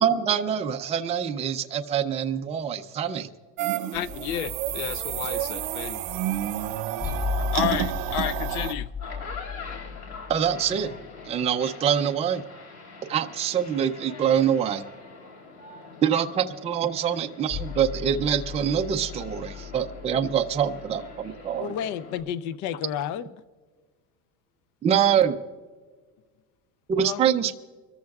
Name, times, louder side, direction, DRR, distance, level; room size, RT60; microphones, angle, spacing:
voice 1, 0.0-3.2 10.3-10.9 11.3-12.4 13.1-14.8 16.0-21.7 24.8-25.4 26.9-27.5, right 8 dB, 15° right, 0.4 m, -25 dB
sound 1, 3.6-8.7, right 12 dB, 80° right, 0.8 m, -30 dB
voice 2, 3.9-6.0 7.4-8.9, left 12 dB, 80° left, 0.7 m, -31 dB
sound 2, 3.9-11.2 17.5-21.6, left 5 dB, 25° left, 3.6 m, -36 dB
sound 3, 8.9-22.2, left 4 dB, 60° left, 3.4 m, -44 dB
voice 3, 21.6-23.3 27.0-27.3, left 9 dB, 45° left, 0.6 m, -31 dB
25.5 x 14.0 x 2.4 m
cardioid pair, 150°, 41 cm